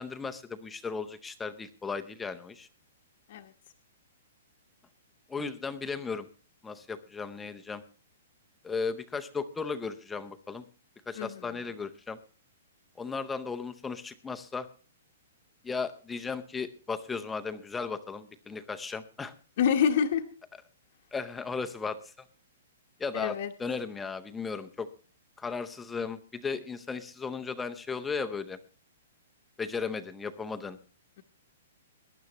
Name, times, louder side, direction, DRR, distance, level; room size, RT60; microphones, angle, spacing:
voice 1, 0.0-2.7 5.3-6.3 6.6-7.8 8.6-10.6 11.1-12.2 13.0-14.7 15.6-19.3 21.1-22.1 23.0-24.9 25.4-28.6 29.6-30.8, left 5 dB, 5° left, 8 dB, 0.7 m, -36 dB
voice 2, 19.6-20.3 23.1-23.5, left 7 dB, 40° left, 1 dB, 1.0 m, -27 dB
22.0 x 11.0 x 3.0 m, 0.38 s
hypercardioid pair, 180°, 0 cm